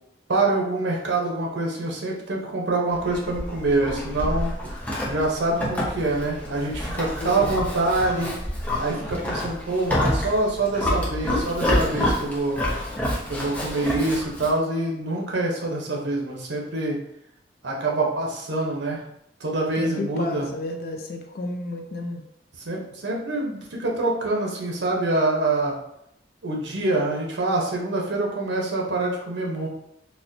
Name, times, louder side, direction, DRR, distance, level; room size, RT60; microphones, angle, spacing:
voice 1, 0.3-4.7 5.1-8.3 8.8-12.6 13.3-17.0 17.6-19.0 19.4-20.5 22.6-25.8 26.4-29.7, right 2 dB, 80° right, -1 dB, 0.8 m, -25 dB
Livestock farm animals working animals, 2.9-14.6, left 1 dB, 10° left, 0.6 m, -28 dB
voice 2, 7.2-7.5 19.8-22.2, left 2 dB, 55° left, 3 dB, 0.5 m, -32 dB
4.1 x 2.2 x 2.6 m, 0.77 s
head